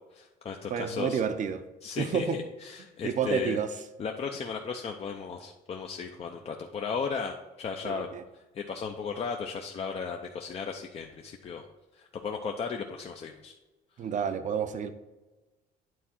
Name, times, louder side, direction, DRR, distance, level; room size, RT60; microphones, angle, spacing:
voice 1, 0.0-1.2 1.8-3.6 4.0-8.1 8.3-11.7 11.9-13.5, left 5 dB, 35° left, 2 dB, 0.6 m, -36 dB
voice 2, 0.7-1.6 2.0-2.4 3.0-3.7 7.8-8.2 14.0-14.9, right 6 dB, 45° right, 10 dB, 0.7 m, -29 dB
9.3 x 3.6 x 4.4 m, 1.1 s
cardioid pair, 110°, 17 cm